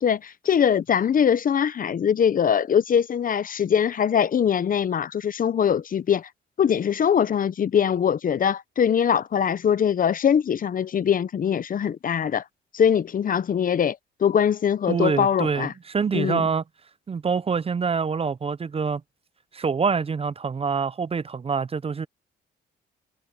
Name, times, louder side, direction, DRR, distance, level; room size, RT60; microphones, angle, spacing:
voice 1, 0.0-6.3 6.6-12.4 12.7-15.7 16.1-16.4, left 8 dB, 45° left, 0.7 m, -22 dB
voice 2, 14.9-16.6 17.1-19.0 19.5-22.1, right 5 dB, 30° right, 0.6 m, -25 dB
cardioid pair, 90°, 20 cm